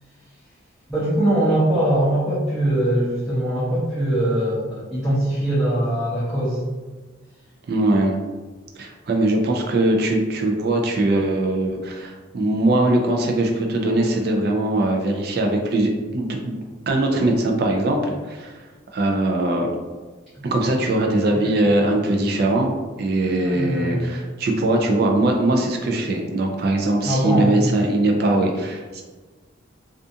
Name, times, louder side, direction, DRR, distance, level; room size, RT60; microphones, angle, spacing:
voice 1, 0.9-6.6 23.2-24.0 27.0-27.5, right 1 dB, ahead, -13 dB, 0.6 m, -22 dB
voice 2, 7.7-8.2 8.8-16.6 16.9-19.7 20.4-22.7 23.0-29.0, right 1 dB, 50° right, 2 dB, 0.4 m, -21 dB
2.4 x 2.4 x 2.6 m, 1.3 s
head